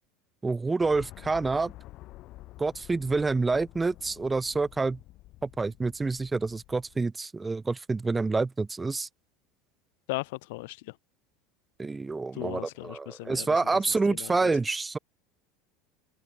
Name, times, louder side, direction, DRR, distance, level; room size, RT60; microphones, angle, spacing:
voice 1, 0.4-1.7 2.6-5.0 5.4-9.1 11.8-15.0, right 3 dB, 10° right, 0.5 m, -28 dB
sound 1, 0.8-7.0, left 17 dB, 45° left, 2.0 m, -49 dB
voice 2, 10.1-10.9 12.3-13.6 14.1-14.5, left 23 dB, 75° left, 0.9 m, -37 dB
open air
cardioid pair, 160°, 0 cm